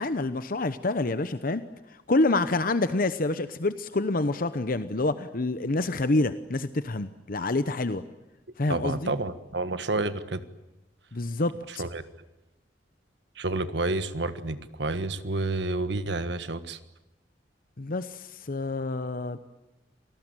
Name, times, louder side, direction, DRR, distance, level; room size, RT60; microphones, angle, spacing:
voice 1, 0.0-1.6 2.1-8.0 8.6-9.1 11.1-11.8 17.8-19.4, left 2 dB, 50° left, 12 dB, 0.9 m, -27 dB
voice 2, 8.7-10.4 11.7-12.0 13.4-16.8, right 2 dB, 70° right, 12 dB, 1.6 m, -30 dB
27.0 x 19.0 x 9.1 m, 1.0 s
head